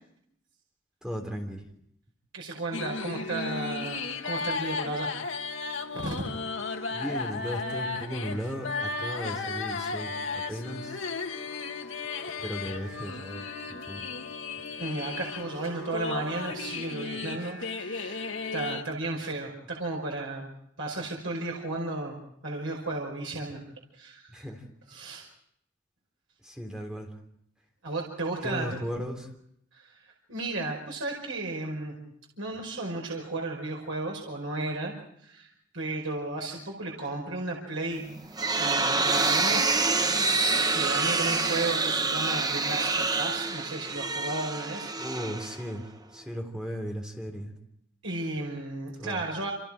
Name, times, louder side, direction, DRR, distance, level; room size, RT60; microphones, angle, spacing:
voice 1, 1.0-1.7 6.9-11.0 12.4-14.1 24.3-24.6 26.4-27.1 28.4-29.3 45.0-45.9 46.1-47.5 49.0-49.2, equal, 5° right, 3 dB, 3.4 m, -36 dB
voice 2, 2.3-5.2 5.9-6.2 14.8-20.5 20.8-22.2 22.4-23.6 23.9-24.5 24.9-25.3 27.8-28.8 29.7-32.0 32.4-34.9 35.2-35.5 35.7-38.0 38.6-39.7 40.7-44.9 48.0-49.5, right 2 dB, 80° right, -1 dB, 5.2 m, -34 dB
sound 1, 2.7-18.8, left 4 dB, 70° left, 1.8 m, -35 dB
sound 2, 38.0-45.9, right 3 dB, 20° right, 0.9 m, -27 dB
28.5 x 28.5 x 5.0 m, 0.72 s
head